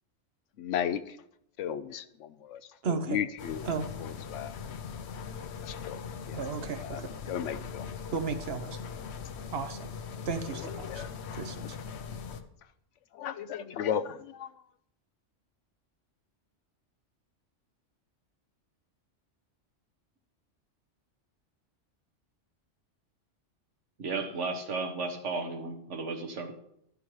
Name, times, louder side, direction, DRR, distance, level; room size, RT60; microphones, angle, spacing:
voice 1, 0.6-1.2 1.6-3.7 4.0-4.5 5.6-6.0 6.3-6.5 6.8-7.9 10.5-11.1 11.6-11.7 13.1-14.5, left 9 dB, 90° left, 13 dB, 1.0 m, -35 dB
voice 2, 2.8-3.2 3.7-3.9 6.3-7.1 8.1-8.7 9.5-9.9 10.3-11.0 11.4-11.6, right 5 dB, 60° right, 10 dB, 1.0 m, -33 dB
sound 1, 3.4-12.4, left 6 dB, 65° left, 0.9 m, -40 dB
voice 3, 24.0-26.5, right 3 dB, 75° right, 4 dB, 1.6 m, -34 dB
12.0 x 10.0 x 3.2 m, 0.76 s
omnidirectional pair, 1.2 m